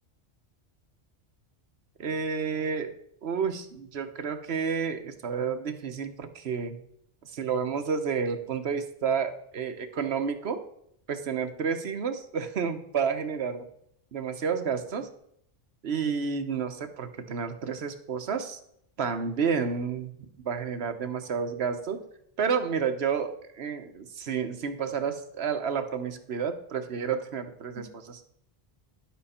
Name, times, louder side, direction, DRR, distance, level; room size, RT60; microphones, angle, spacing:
voice 1, 2.0-2.9 3.2-6.8 7.2-10.6 11.1-13.7 14.1-15.1 15.8-18.6 19.0-20.1 20.4-22.0 22.4-28.3, right 6 dB, 80° right, 8 dB, 1.2 m, -30 dB
10.5 x 7.5 x 4.3 m, 0.70 s
omnidirectional pair, 1.1 m